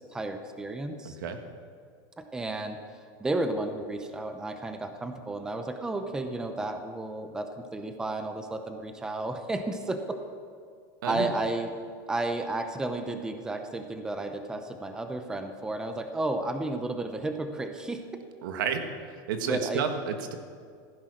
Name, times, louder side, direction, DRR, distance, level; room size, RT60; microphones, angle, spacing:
voice 1, 0.0-1.2 2.2-2.8 3.2-10.2 11.0-11.7 12.1-18.0 19.5-19.8, right 2 dB, 5° right, 7 dB, 0.7 m, -32 dB
voice 2, 1.0-1.4 11.0-11.3 18.4-20.4, right 7 dB, 85° right, 6 dB, 1.6 m, -31 dB
15.5 x 10.0 x 6.3 m, 2.2 s
supercardioid pair, 165°, 11 cm